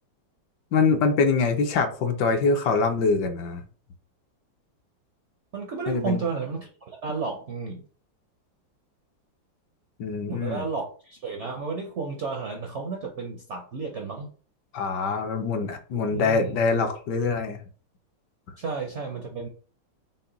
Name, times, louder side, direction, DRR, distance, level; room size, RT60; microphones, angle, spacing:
voice 1, 0.7-3.6 5.9-6.2 10.0-10.6 14.7-17.6, left 4 dB, 70° left, 5 dB, 1.2 m, -24 dB
voice 2, 5.5-7.8 10.3-14.3 16.1-16.7 18.6-19.5, right 4 dB, 65° right, 2 dB, 0.7 m, -32 dB
5.7 x 2.2 x 3.9 m, 0.40 s
omnidirectional pair, 2.1 m